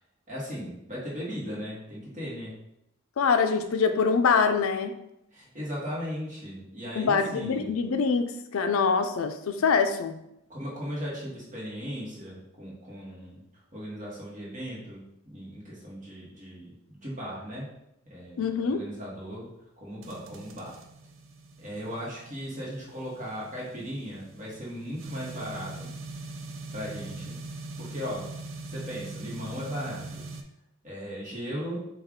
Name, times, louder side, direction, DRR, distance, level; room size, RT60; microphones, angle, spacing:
voice 1, 0.3-2.5 5.3-7.7 10.5-13.4 13.7-17.7 18.0-18.4 18.7-19.5 19.8-20.7 21.6-25.9 26.7-27.4 27.8-28.3 28.7-30.3 30.8-31.8, equal, 35° right, -6 dB, 1.4 m, -37 dB
voice 2, 3.2-5.0 7.0-10.2 18.4-18.8, left 5 dB, 80° left, 8 dB, 0.4 m, -24 dB
sound 1, 20.0-30.4, right 2 dB, 70° right, 0.5 m, -42 dB
5.5 x 2.4 x 3.6 m, 0.83 s
head